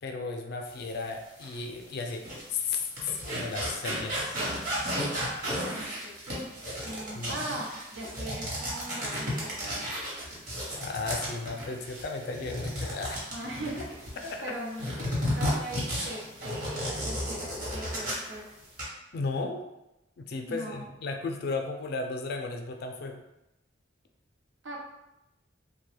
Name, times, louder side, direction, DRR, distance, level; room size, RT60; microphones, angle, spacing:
voice 1, 0.0-4.4 7.1-7.4 10.7-13.2 14.2-14.5 15.4-15.5 19.1-19.6 20.2-23.2, left 4 dB, 55° left, 4 dB, 0.4 m, -35 dB
sound 1, 1.4-1.5 2.1-14.4 14.8-18.3 18.6-18.8, equal, 45° right, 1.0 m, -33 dB
voice 2, 5.6-6.5 6.8-9.9 13.3-13.9 14.2-14.9 15.2-18.4 20.5-20.9 24.6-24.8, right 1 dB, 85° right, -3 dB, 0.8 m, -39 dB
2.8 x 2.2 x 3.3 m, 0.93 s
head